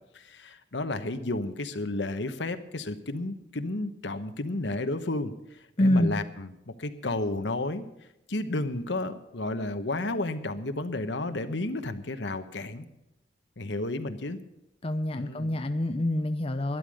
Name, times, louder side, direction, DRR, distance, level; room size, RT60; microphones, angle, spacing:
voice 1, 0.1-7.9 8.3-12.9 13.6-14.4 15.1-15.8, left 2 dB, 70° left, 9 dB, 1.2 m, -32 dB
voice 2, 5.8-6.1 14.8-16.8, left 1 dB, 30° left, 7 dB, 0.7 m, -26 dB
12.5 x 11.0 x 6.4 m, 0.88 s
head